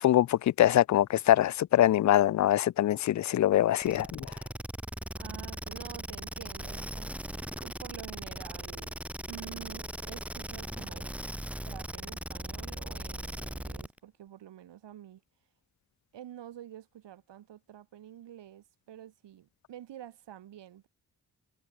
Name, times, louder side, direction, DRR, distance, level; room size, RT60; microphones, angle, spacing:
voice 1, 0.0-4.3, left 12 dB, 45° left, 0.4 m, -24 dB
sound 1, 3.8-14.0, equal, 5° right, 2.9 m, -39 dB
voice 2, 5.2-7.2 7.6-9.0 9.3-11.1 11.6-15.2 16.1-20.9, right 11 dB, 85° right, 4.2 m, -48 dB
supercardioid pair, 45°, 41 cm